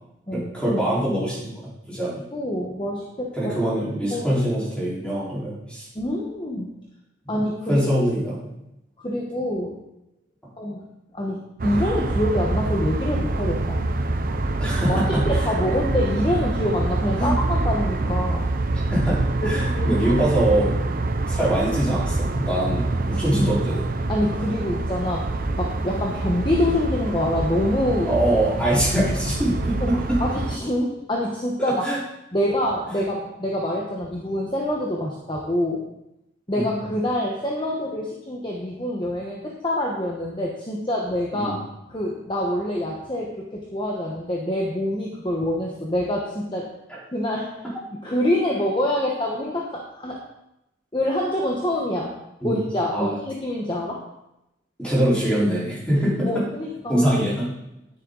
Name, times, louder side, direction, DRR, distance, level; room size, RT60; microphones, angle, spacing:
voice 1, 0.3-2.3 3.3-5.9 7.2-7.4 7.7-8.5 14.6-15.3 17.2-17.4 18.7-20.8 21.2-23.8 28.1-30.2 31.8-32.0 36.5-36.7 41.3-41.6 46.9-47.0 52.4-52.6 52.9-53.2 54.8-56.5 56.9-57.5, right 1 dB, 5° left, -8 dB, 4.2 m, -23 dB
voice 2, 2.3-3.5 3.9-4.2 5.9-6.7 7.3-7.9 9.0-9.7 10.6-10.8 11.1-13.8 14.9-15.0 15.3-18.5 19.4-20.0 23.1-23.8 24.1-25.2 25.5-28.1 29.8-31.9 32.3-35.8 36.5-41.5 41.9-46.7 47.1-47.5 48.0-50.2 50.9-52.1 52.4-54.0 55.9-57.2, left 1 dB, 25° left, -1 dB, 1.1 m, -26 dB
sound 1, 11.6-30.6, right 2 dB, 45° right, 0.6 m, -25 dB
10.0 x 9.9 x 4.0 m, 0.86 s
head